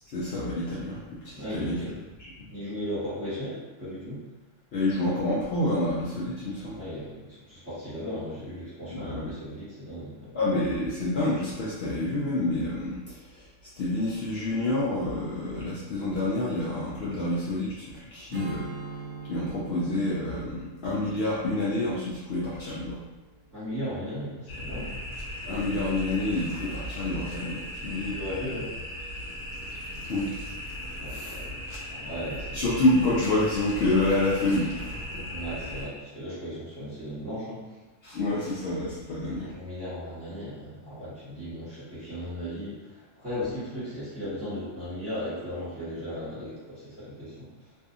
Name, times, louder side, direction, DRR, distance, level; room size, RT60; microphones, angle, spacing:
voice 1, 0.1-1.8 4.7-6.8 8.9-9.3 10.3-13.5 13.7-18.7 19.3-23.0 25.5-28.2 30.1-30.4 31.1-31.4 32.5-35.3 38.0-39.5, left 2 dB, 65° left, -7 dB, 0.7 m, -28 dB
voice 2, 1.3-2.0 2.5-4.2 6.7-10.4 17.1-17.3 23.5-24.9 28.1-28.7 31.0-31.6 31.9-32.7 35.3-37.8 39.3-47.5, equal, 10° right, -13 dB, 1.1 m, -36 dB
Strum, 18.3-23.6, right 3 dB, 80° right, 0.9 m, -43 dB
sound 1, 24.5-35.9, equal, 80° left, 1.1 m, -37 dB
2.6 x 2.4 x 2.4 m, 1.2 s
omnidirectional pair, 1.3 m